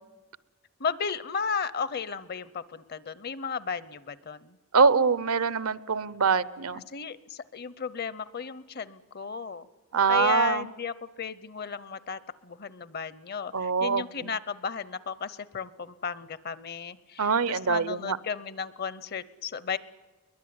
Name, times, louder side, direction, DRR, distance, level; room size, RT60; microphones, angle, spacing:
voice 1, 0.8-4.6 6.7-9.7 10.1-19.8, left 6 dB, 45° left, 18 dB, 0.7 m, -34 dB
voice 2, 4.7-6.8 9.9-10.6 13.5-14.0 17.2-18.2, right 5 dB, 80° right, 18 dB, 0.8 m, -24 dB
22.0 x 20.5 x 9.5 m, 1.2 s
head